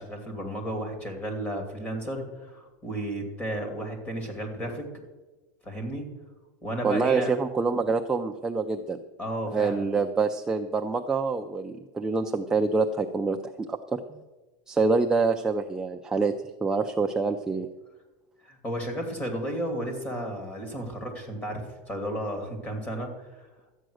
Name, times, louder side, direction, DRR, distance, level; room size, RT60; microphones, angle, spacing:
voice 1, 0.0-4.8 5.6-6.1 6.6-7.4 9.2-9.9 18.4-23.5, equal, 15° left, 3 dB, 2.5 m, -33 dB
voice 2, 6.8-9.0 9.5-14.2 14.7-16.3 16.6-17.7, right 4 dB, 5° right, 4 dB, 0.4 m, -26 dB
13.0 x 9.0 x 6.3 m, 1.2 s
supercardioid pair, 170°, 9 cm